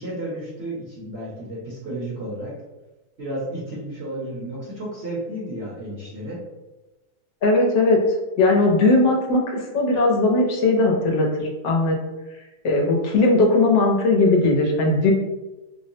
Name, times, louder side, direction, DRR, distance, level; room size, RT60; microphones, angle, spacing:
voice 1, 0.0-2.6 3.2-6.4, right 1 dB, 50° right, -5 dB, 0.9 m, -32 dB
voice 2, 7.4-8.0 8.4-12.0 12.6-15.1, left 2 dB, 85° left, 0 dB, 1.4 m, -18 dB
5.4 x 2.1 x 2.7 m, 1.1 s
omnidirectional pair, 1.8 m